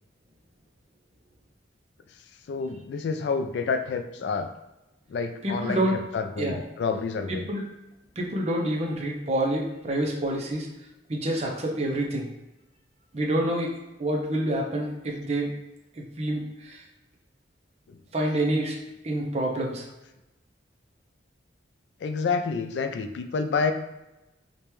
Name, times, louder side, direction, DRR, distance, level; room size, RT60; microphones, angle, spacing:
voice 1, 2.5-4.5 5.1-7.5 17.9-18.0 22.0-23.7, left 5 dB, 65° left, 8 dB, 0.3 m, -29 dB
voice 2, 5.4-6.0 6.4-6.6 7.3-7.6 8.2-10.7 11.1-12.3 13.1-15.5 16.0-16.8 18.1-18.8 19.0-19.8, right 1 dB, 35° right, 0 dB, 0.6 m, -27 dB
5.0 x 2.2 x 3.0 m, 0.97 s
head